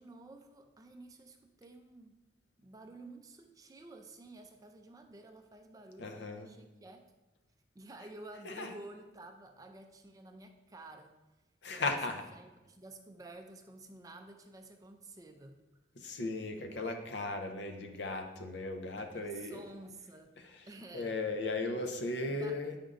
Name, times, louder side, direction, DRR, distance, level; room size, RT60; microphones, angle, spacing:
voice 1, 0.0-2.2 2.6-7.0 7.7-11.2 11.7-15.6 19.1-20.3 20.7-21.1 22.3-22.6, right 2 dB, 20° right, 5 dB, 0.4 m, -51 dB
voice 2, 6.0-6.5 8.4-8.7 11.6-12.3 15.9-19.7 20.4-22.8, left 2 dB, 65° left, 5 dB, 0.6 m, -37 dB
7.9 x 5.1 x 2.5 m, 1.1 s
head